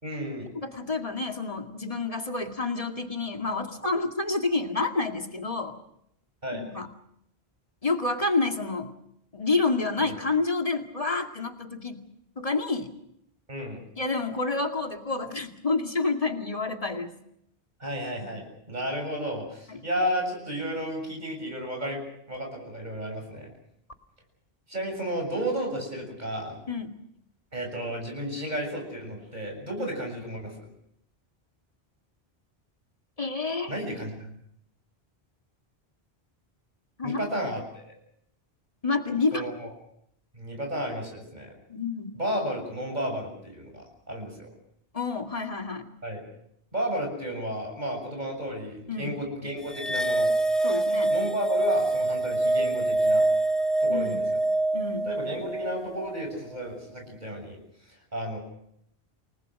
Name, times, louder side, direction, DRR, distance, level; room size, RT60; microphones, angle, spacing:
voice 1, 0.0-0.5 6.4-6.6 10.0-10.1 13.5-13.8 17.8-22.0 22.3-23.5 24.7-26.6 27.5-30.7 33.7-34.4 37.0-37.9 39.3-39.7 40.3-41.5 42.1-44.5 46.0-46.2 46.7-50.3 51.1-53.3 53.8-54.4 55.0-57.6 58.1-58.4, equal, 45° right, 2 dB, 7.2 m, -33 dB
voice 2, 0.6-5.8 6.6-6.9 7.8-8.9 9.3-12.1 12.4-12.9 14.0-17.2 19.7-19.8 26.7-27.0 29.8-29.9 33.2-33.7 37.0-37.2 38.8-39.5 41.7-42.1 44.9-45.8 48.9-49.2 50.6-51.1 53.9-54.3 54.7-55.2, left 3 dB, 35° left, 4 dB, 2.3 m, -29 dB
sound 1, 49.7-56.3, right 2 dB, ahead, 1.2 m, -25 dB
29.0 x 20.0 x 6.4 m, 0.75 s
omnidirectional pair, 1.1 m